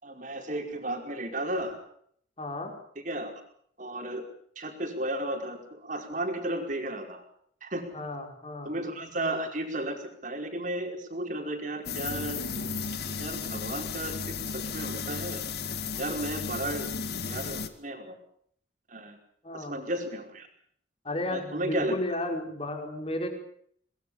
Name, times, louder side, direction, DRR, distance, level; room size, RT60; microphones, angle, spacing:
voice 1, 0.0-1.8 3.0-3.3 3.8-4.2 4.5-7.2 7.6-8.0 8.6-12.4 13.2-15.4 16.0-16.9 17.2-18.1 18.9-19.2 19.5-20.5 21.3-22.0, right 1 dB, 45° right, 4 dB, 5.0 m, -34 dB
voice 2, 2.4-2.8 7.9-8.7 19.4-19.8 21.0-23.3, left 1 dB, 30° left, 4 dB, 5.2 m, -33 dB
sound 1, 11.9-17.7, left 5 dB, 60° left, 2.0 m, -34 dB
23.5 x 21.5 x 7.1 m, 0.65 s
head